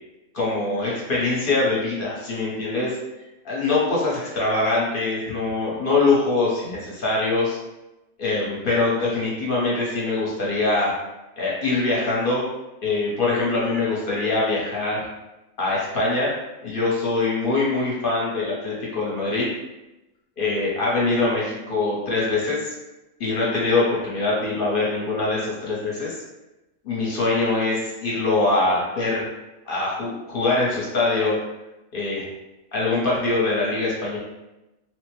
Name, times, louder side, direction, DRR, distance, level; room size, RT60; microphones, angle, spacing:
voice 1, 0.3-3.0 3.4-7.6 8.2-10.9 11.4-12.5 12.8-15.0 15.6-16.3 16.6-19.5 20.4-22.7 23.2-26.1 26.8-29.3 29.7-31.4 31.9-32.3 32.7-34.2, left 3 dB, 50° left, -5 dB, 0.8 m, -23 dB
3.0 x 2.1 x 3.0 m, 1.0 s
omnidirectional pair, 1.4 m